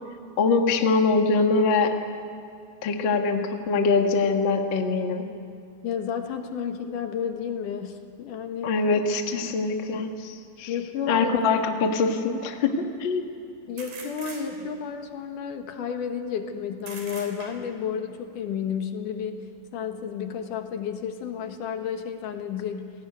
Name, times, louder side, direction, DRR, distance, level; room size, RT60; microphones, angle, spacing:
voice 1, 0.4-1.9 2.8-5.2 8.6-10.7 11.1-13.3, left 4 dB, 45° left, 4 dB, 1.9 m, -23 dB
voice 2, 5.8-8.7 9.4-9.6 10.7-11.3 12.7-12.8 13.7-22.9, left 7 dB, 70° left, 6 dB, 2.9 m, -32 dB
sound 1, 11.4-11.5 13.8-14.9 16.8-17.9, right 4 dB, 85° right, 5.2 m, -42 dB
29.0 x 18.0 x 9.4 m, 2.5 s
omnidirectional pair, 3.8 m